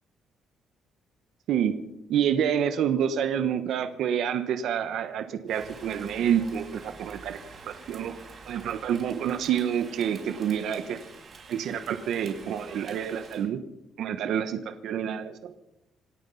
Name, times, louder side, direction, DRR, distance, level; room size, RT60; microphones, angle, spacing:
voice 1, 2.1-7.4 7.7-8.2 8.5-11.0 11.5-13.6 14.0-15.5, right 9 dB, 60° right, 9 dB, 1.2 m, -28 dB
Rain, 5.5-13.5, right 4 dB, 35° right, 4.8 m, -47 dB
27.5 x 9.2 x 5.7 m, 0.88 s
cardioid pair, 170°, 0 cm